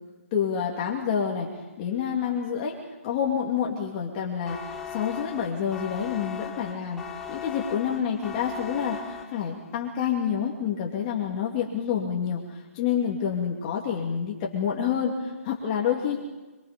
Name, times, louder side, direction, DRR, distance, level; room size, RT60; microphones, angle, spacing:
voice 1, 0.3-1.5 1.8-2.7 3.0-7.0 7.3-16.2, left 8 dB, 30° left, -2 dB, 3.0 m, -28 dB
sound 1, 4.5-9.7, left 7 dB, 5° left, 1.4 m, -38 dB
28.0 x 23.0 x 5.3 m, 1.2 s
hypercardioid pair, 150°, 8 cm